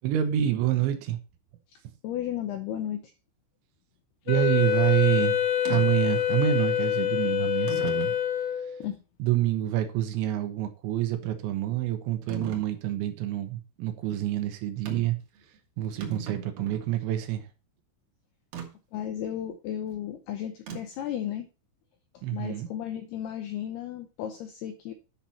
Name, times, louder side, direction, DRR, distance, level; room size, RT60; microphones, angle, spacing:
voice 1, 0.0-1.2 4.3-5.4 5.7-8.1 9.2-15.2 15.8-17.5 22.2-22.7, right 12 dB, 75° right, 3.1 m, -27 dB
voice 2, 1.7-3.1 8.8-9.0 18.9-21.5 22.1-24.9, left 10 dB, 85° left, 2.3 m, -34 dB
Wind instrument woodwind instrument, 4.3-8.8, left 10 dB, 70° left, 2.8 m, -26 dB
sound 1, 5.7-5.9 6.8-6.9 7.7-8.2 8.8-8.9 12.3-12.7 14.9-15.2 15.5-15.6 15.9-16.9 18.5-18.7 20.7-21.1, right 6 dB, 60° right, 2.8 m, -38 dB
10.5 x 6.0 x 4.2 m
omnidirectional pair, 5.6 m